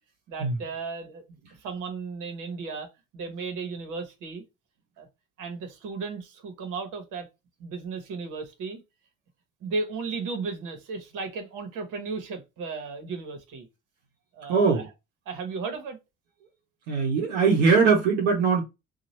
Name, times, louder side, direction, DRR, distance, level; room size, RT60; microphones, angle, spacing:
voice 1, 0.3-1.2 1.6-2.9 3.1-4.4 5.0-5.1 5.4-7.3 7.6-8.8 9.6-13.7 14.3-14.9 15.3-16.0, right 4 dB, 65° right, 1.2 m, -35 dB
voice 2, 14.5-14.8 16.9-18.6, right 5 dB, 90° right, 0.9 m, -21 dB
2.9 x 2.4 x 4.0 m
hypercardioid pair, 60°, 33 cm